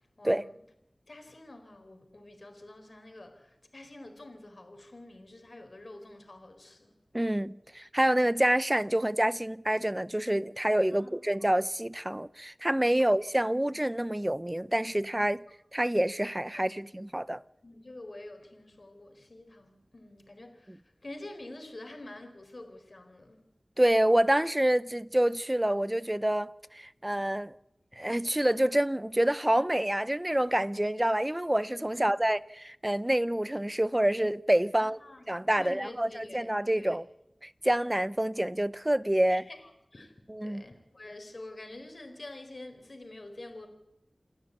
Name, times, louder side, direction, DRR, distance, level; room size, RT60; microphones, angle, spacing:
voice 1, 0.2-0.6 1.1-6.9 10.9-11.2 13.0-13.1 13.6-13.8 16.5-16.7 17.6-23.5 31.9-32.3 34.7-35.3 35.6-37.0 39.3-39.6 39.9-40.1 40.4-43.7, left 2 dB, 60° left, 4.2 m, -47 dB
voice 2, 7.1-15.4 15.7-17.4 23.8-27.5 28.0-35.0 35.3-37.0 37.4-39.4 40.3-40.6, right 1 dB, 15° right, 0.7 m, -27 dB
29.0 x 12.5 x 8.4 m
wide cardioid pair, 65°, 0 cm